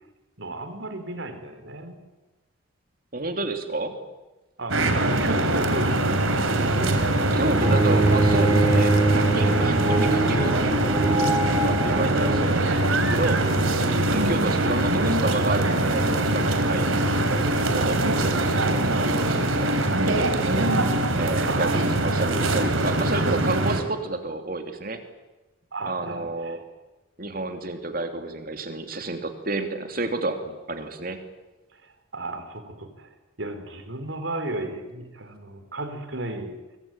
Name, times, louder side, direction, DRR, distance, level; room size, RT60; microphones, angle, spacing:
voice 1, 0.4-2.0 4.6-6.3 16.8-17.0 21.4-21.9 25.7-26.6 30.4-30.5 31.7-36.6, right 2 dB, 65° right, 9 dB, 4.0 m, -34 dB
voice 2, 3.1-4.0 7.3-10.6 11.6-13.6 14.1-16.8 17.3-20.7 21.2-25.0 25.8-26.6 27.2-30.4 30.7-31.2, right 2 dB, 45° right, 6 dB, 3.0 m, -30 dB
sound 1, 4.7-23.8, right 1 dB, 85° right, 3.5 m, -23 dB
Bowed string instrument, 7.6-12.6, right 2 dB, 15° right, 5.6 m, -23 dB
25.5 x 24.0 x 9.0 m, 1.1 s
head